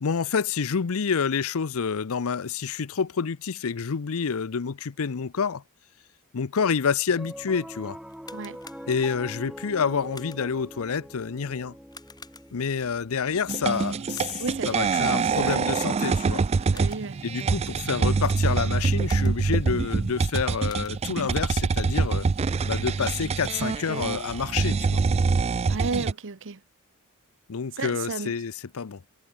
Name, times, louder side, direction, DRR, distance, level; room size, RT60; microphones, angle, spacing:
voice 1, 0.0-5.6 6.3-8.0 8.9-11.7 12.5-16.4 17.2-22.3 22.6-25.0 27.5-29.0, left 6 dB, 70° left, 0.6 m, -28 dB
Piano, 7.1-17.6, equal, 5° right, 3.4 m, -45 dB
sound 1, 8.1-9.4 10.1-10.7 11.9-12.8 14.1-14.7 16.5-17.3 19.0-19.7 20.2-21.3, left 4 dB, 20° left, 1.9 m, -49 dB
sound 2, 13.5-26.1, right 4 dB, 30° right, 0.3 m, -25 dB
voice 2, 14.4-15.6 16.7-17.2 25.7-26.6 27.8-28.3, right 4 dB, 60° right, 1.0 m, -33 dB
head